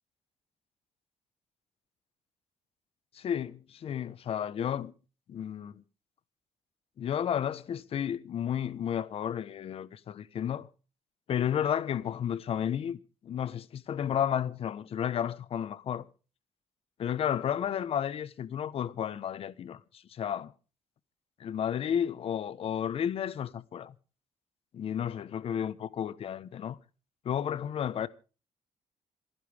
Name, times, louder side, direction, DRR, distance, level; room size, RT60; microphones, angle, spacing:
voice 1, 3.1-4.9 5.3-5.8 7.0-10.7 11.3-16.1 17.0-20.5 21.4-23.9 24.7-26.8 27.2-28.1, left 9 dB, 50° left, 1.2 m, -32 dB
27.0 x 10.5 x 3.5 m
cardioid pair, 140°, 12 cm